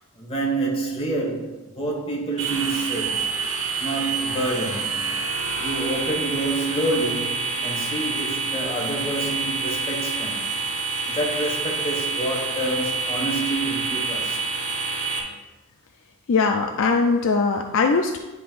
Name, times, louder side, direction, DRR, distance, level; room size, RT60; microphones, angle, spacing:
voice 1, 0.1-3.3 3.8-5.0 5.6-10.5 11.1-14.4, right 2 dB, 25° left, 1.6 m, -28 dB
sound 1, 2.4-15.2, right 4 dB, 65° right, 1.3 m, -27 dB
voice 2, 16.3-18.2, left 4 dB, 60° left, 0.4 m, -20 dB
10.0 x 5.5 x 2.5 m
head